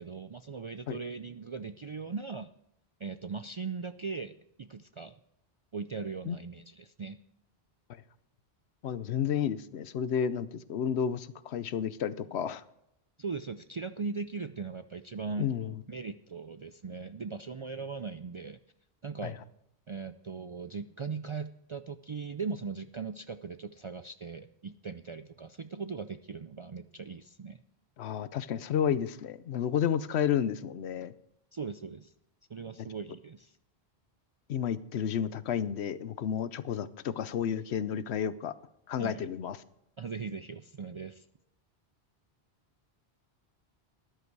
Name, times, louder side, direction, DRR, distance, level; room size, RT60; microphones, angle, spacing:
voice 1, 0.0-2.5 3.0-5.1 5.7-7.2 13.2-15.5 15.9-18.6 19.0-19.4 19.9-27.6 31.5-32.1 32.5-33.5 39.0-39.3 40.0-41.3, right 5 dB, 55° right, 10 dB, 0.3 m, -39 dB
voice 2, 8.8-12.6 15.4-15.8 19.2-19.3 28.0-31.1 34.5-38.5 38.9-39.6, left 8 dB, 85° left, 16 dB, 1.0 m, -31 dB
13.5 x 11.0 x 4.7 m, 0.81 s
omnidirectional pair, 1.1 m